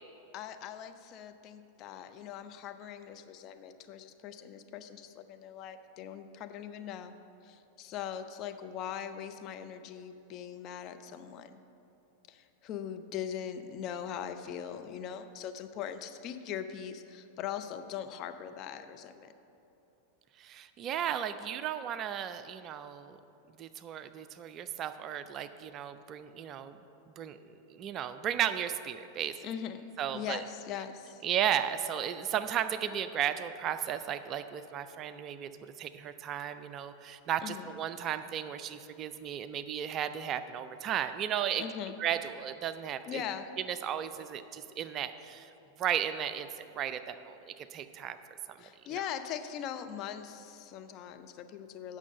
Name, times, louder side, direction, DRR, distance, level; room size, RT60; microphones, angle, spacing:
voice 1, 0.3-7.1 7.4-11.6 12.3-19.3 29.4-29.8 30.1-31.2 37.4-37.7 41.6-42.0 43.1-43.5 48.6-52.0, left 9 dB, 35° left, 8 dB, 0.5 m, -41 dB
voice 2, 20.4-23.2 23.6-26.8 27.2-29.4 30.0-30.4 31.2-41.6 42.0-43.2 43.7-45.5 45.8-48.2 48.5-48.7, right 9 dB, 30° right, 11 dB, 0.4 m, -35 dB
8.4 x 6.2 x 6.5 m, 3.0 s
figure-of-eight pair, 90°, 0 cm